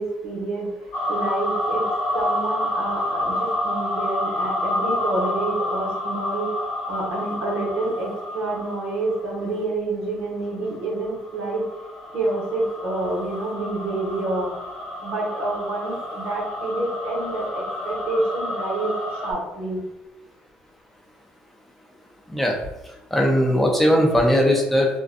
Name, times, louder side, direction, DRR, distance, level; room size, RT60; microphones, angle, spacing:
voice 1, 0.0-1.8 2.1-11.6 12.1-14.5 15.0-19.8, right 2 dB, 85° right, -3 dB, 0.8 m, -28 dB
sound 1, 0.9-9.6 10.7-19.3, left 1 dB, 90° left, 1.1 m, -29 dB
voice 2, 23.1-24.9, equal, 5° left, -1 dB, 0.5 m, -19 dB
2.5 x 2.2 x 2.4 m, 0.94 s
cardioid pair, 115°, 3 cm